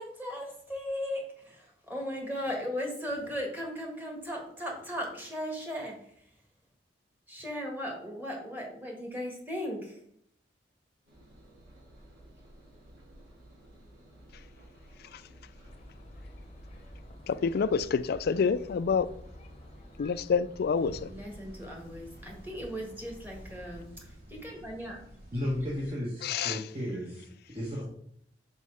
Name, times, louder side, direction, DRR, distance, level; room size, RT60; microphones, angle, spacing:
voice 1, 0.0-6.3 7.3-10.0 21.1-25.0 26.9-27.3, equal, 10° right, 1.6 m, -37 dB
Engine, 11.1-21.2, equal, 75° right, 3.0 m, -55 dB
sound 1, 15.6-23.9, left 1 dB, 35° left, 0.8 m, -50 dB
voice 2, 17.3-19.1 20.0-21.1 26.2-26.6, left 5 dB, 55° left, 0.3 m, -28 dB
sound 2, 20.8-25.9, equal, 55° right, 2.5 m, -51 dB
voice 3, 25.3-27.8, left 1 dB, 30° right, 1.3 m, -34 dB
5.4 x 5.3 x 4.9 m
head